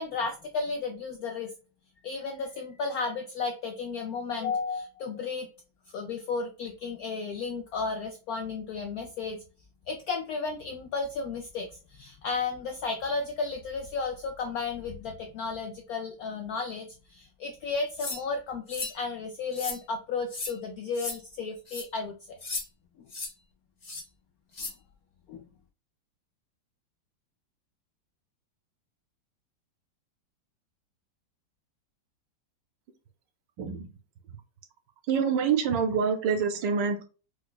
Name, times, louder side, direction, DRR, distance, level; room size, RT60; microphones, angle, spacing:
voice 1, 0.0-1.5 2.0-5.5 5.9-9.4 9.9-22.4 24.6-24.7 25.3-25.4, left 4 dB, 75° left, 3 dB, 0.8 m, -33 dB
sound 1, 18.0-18.2 18.7-19.0 19.5-19.8 20.3-20.5 20.9-21.2 21.7-21.8 22.4-22.6 23.1-23.3 23.8-24.0 24.5-24.7, left 3 dB, 35° left, 0.7 m, -35 dB
voice 2, 35.1-37.0, right 6 dB, 70° right, 6 dB, 1.3 m, -26 dB
4.9 x 2.1 x 2.2 m, 0.34 s
omnidirectional pair, 2.1 m